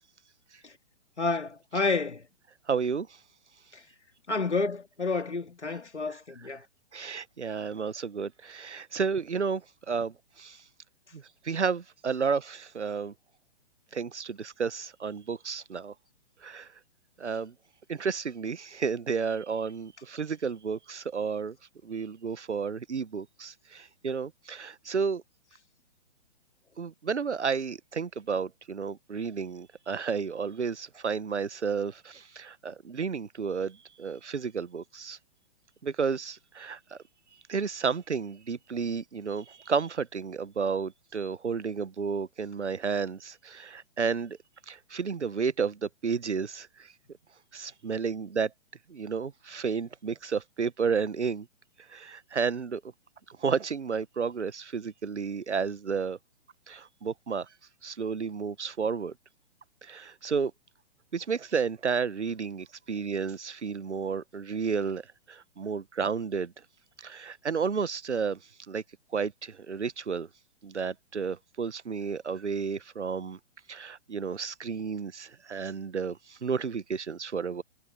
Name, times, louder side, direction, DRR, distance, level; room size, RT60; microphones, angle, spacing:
voice 1, 1.2-2.2 4.3-6.6, left 3 dB, 80° left, 3.1 m, -29 dB
voice 2, 2.7-3.1 6.1-6.5 6.9-10.6 11.1-13.1 13.9-15.9 16.4-16.7 17.2-17.5 17.9-21.6 21.8-25.2 26.8-35.2 35.8-37.0 37.5-44.4 44.7-46.9 47.5-48.5 48.9-51.5 51.9-52.8 53.4-56.2 56.7-57.5 57.8-59.1 59.8-60.5 61.1-65.0 65.3-66.5 67.0-68.4 68.7-68.8 69.1-70.3 70.6-73.4 73.7-77.6, right 5 dB, 80° right, 1.0 m, -32 dB
figure-of-eight pair, 125°, 34 cm